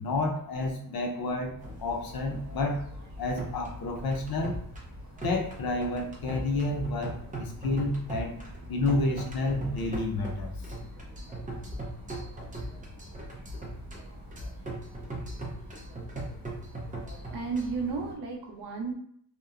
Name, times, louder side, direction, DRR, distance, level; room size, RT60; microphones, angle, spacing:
voice 1, 0.0-2.9 3.2-4.5 5.2-8.4 8.7-10.5, left 2 dB, 75° left, 2 dB, 0.6 m, -30 dB
sound 1, 1.5-17.8, right 2 dB, 20° right, 0.5 m, -40 dB
sound 2, 1.6-18.2, equal, 50° right, 0.8 m, -46 dB
voice 2, 17.3-18.9, right 4 dB, 90° right, 1 dB, 0.7 m, -33 dB
2.9 x 2.1 x 2.4 m, 0.66 s
wide cardioid pair, 170°, 37 cm